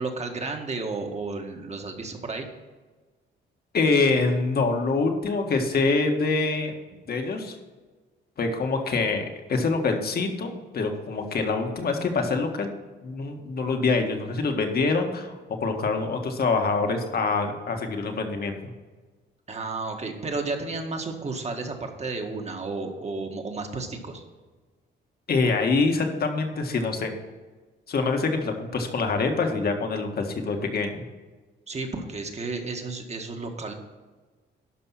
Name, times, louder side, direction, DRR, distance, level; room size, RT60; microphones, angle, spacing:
voice 1, 0.0-2.5 19.5-24.2 31.7-33.7, right 3 dB, 35° right, 3 dB, 1.7 m, -32 dB
voice 2, 3.7-6.7 7.1-7.5 8.4-12.7 13.0-15.3 15.6-18.6 25.3-27.1 27.9-31.0, left 3 dB, 50° left, 4 dB, 1.7 m, -25 dB
12.0 x 5.4 x 5.8 m, 1.3 s
cardioid pair, 90°, 20 cm